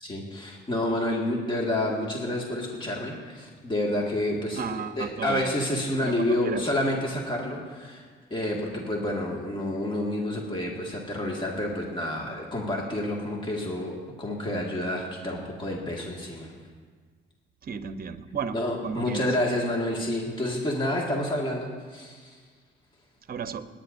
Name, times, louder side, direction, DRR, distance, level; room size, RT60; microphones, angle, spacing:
voice 1, 0.0-16.5 18.5-22.4, left 1 dB, 25° left, -2 dB, 2.0 m, -29 dB
voice 2, 4.5-5.5 6.0-6.7 17.6-19.3 23.3-23.7, right 6 dB, 50° right, 10 dB, 0.8 m, -33 dB
30.0 x 10.0 x 2.7 m, 1.5 s
cardioid pair, 90°, 20 cm